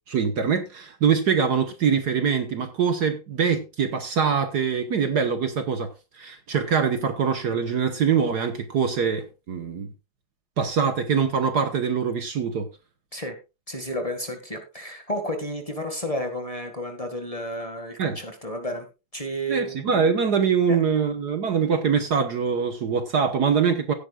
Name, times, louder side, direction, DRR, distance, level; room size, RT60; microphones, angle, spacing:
voice 1, 0.1-9.9 10.6-12.7 18.0-18.2 19.5-23.9, right 6 dB, 55° right, 1.5 m, -23 dB
voice 2, 13.7-18.9 19.1-19.9 20.7-20.8, equal, 20° left, 1.9 m, -31 dB
16.5 x 9.5 x 2.4 m
omnidirectional pair, 2.2 m